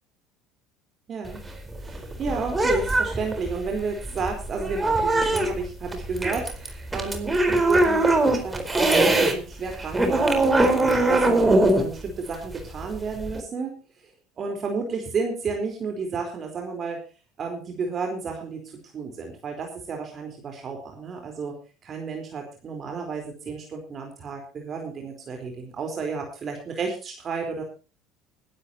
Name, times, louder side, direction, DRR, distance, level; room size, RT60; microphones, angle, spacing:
voice 1, 1.1-1.4 1.8-14.1 14.4-17.0 17.4-18.6 18.9-21.6 21.8-27.6, right 4 dB, 40° right, 3 dB, 4.3 m, -32 dB
sound 1, 1.2-9.3 9.7-13.4, right 2 dB, 15° right, 4.4 m, -22 dB
21.0 x 12.5 x 2.9 m, 0.35 s
supercardioid pair, 95°, 0 cm